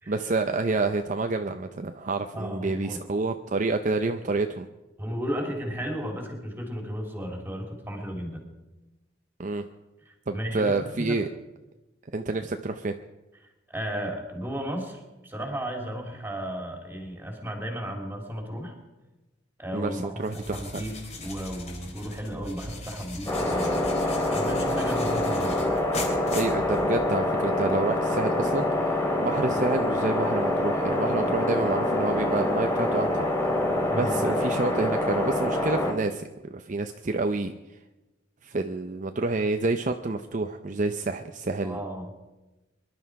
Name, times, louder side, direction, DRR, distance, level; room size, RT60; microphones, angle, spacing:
voice 1, 0.1-4.7 9.4-9.6 10.3-11.3 12.1-12.9 19.7-20.8 26.3-33.3 33.9-36.2 36.5-37.8 38.4-41.8, right 3 dB, 40° right, 7 dB, 0.6 m, -28 dB
voice 2, 2.3-3.0 5.0-8.4 10.3-11.2 13.7-18.7 19.6-20.9 21.2-25.6 33.9-34.4 41.6-42.1, equal, 10° right, 2 dB, 3.0 m, -34 dB
sound 1, 20.2-27.2, left 2 dB, 35° left, 3.1 m, -39 dB
sound 2, 23.3-35.9, left 1 dB, 15° left, 3.0 m, -26 dB
23.5 x 11.5 x 4.8 m, 1.1 s
head